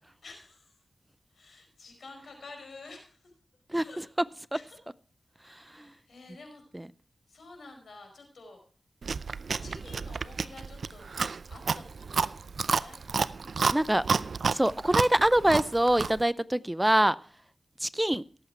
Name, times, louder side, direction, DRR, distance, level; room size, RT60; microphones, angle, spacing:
voice 1, 0.2-0.8 1.3-3.3 3.8-4.1 4.5-4.8 5.4-6.6 7.3-8.6 9.6-11.2 11.5-13.0, left 3 dB, 80° left, 4 dB, 4.9 m, -50 dB
Chewing mastication, 9.0-16.2, right 5 dB, 80° right, 0.5 m, -30 dB
voice 2, 13.7-14.0 14.5-17.2 17.8-18.2, right 1 dB, 15° right, 18 dB, 0.5 m, -24 dB
17.5 x 8.0 x 4.5 m, 0.42 s
cardioid pair, 50°, 0 cm